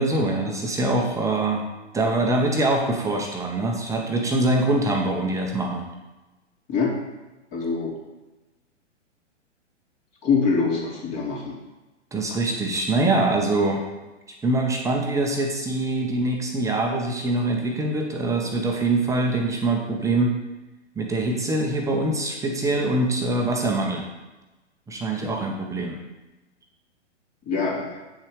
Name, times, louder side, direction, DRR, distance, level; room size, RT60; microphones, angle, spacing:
voice 1, 0.0-1.6 1.9-5.8 12.1-13.9 14.4-20.3 21.0-24.1 24.9-26.0, right 2 dB, 10° right, 0 dB, 1.1 m, -24 dB
voice 2, 7.5-7.9 10.2-11.6 27.4-28.0, left 5 dB, 30° left, -3 dB, 3.2 m, -24 dB
8.7 x 7.4 x 4.9 m, 1.1 s
figure-of-eight pair, 115°, 36 cm